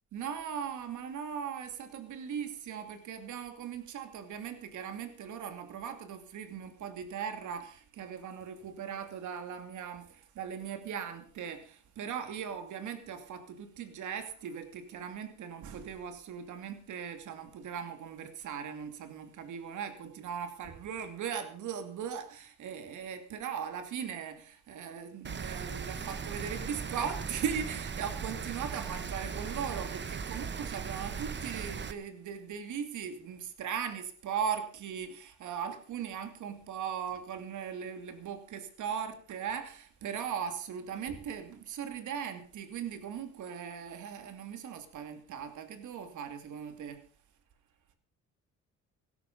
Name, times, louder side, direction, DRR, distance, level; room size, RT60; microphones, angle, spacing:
voice 1, 0.1-47.0, right 7 dB, 75° right, 2.6 m, -39 dB
Rain, 25.2-31.9, right 6 dB, 35° right, 1.2 m, -38 dB
17.0 x 12.5 x 5.3 m
cardioid pair, 90°, 30 cm